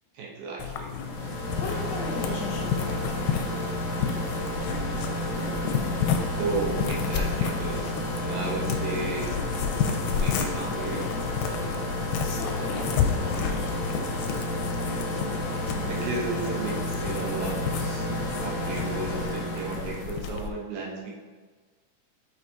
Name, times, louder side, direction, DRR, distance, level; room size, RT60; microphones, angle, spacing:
voice 1, 0.1-1.0 6.4-9.4 10.1-11.1 15.7-18.1 18.4-21.1, right 3 dB, 80° right, -3 dB, 2.8 m, -34 dB
sound 1, 0.6-20.5, left 8 dB, 90° left, 2.3 m, -32 dB
sound 2, 0.8-20.2, left 1 dB, 35° left, 1.6 m, -31 dB
voice 2, 1.5-3.4 12.2-13.8, left 3 dB, 75° left, -1 dB, 2.3 m, -37 dB
7.2 x 4.8 x 2.7 m, 1.5 s
omnidirectional pair, 4.0 m